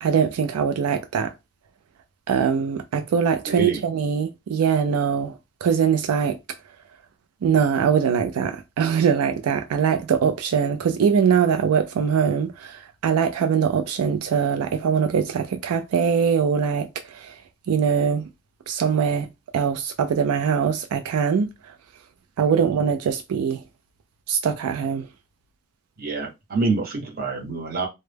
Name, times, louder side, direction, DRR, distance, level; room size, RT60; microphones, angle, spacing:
voice 1, 0.0-1.3 2.3-5.4 5.6-6.4 7.4-17.4 17.7-18.2 18.7-19.3 19.5-21.5 22.4-23.6 24.3-25.1, right 7 dB, 90° right, 0.4 m, -22 dB
voice 2, 3.5-3.8 26.0-27.9, right 3 dB, 40° right, 0.7 m, -26 dB
2.1 x 2.0 x 3.2 m
head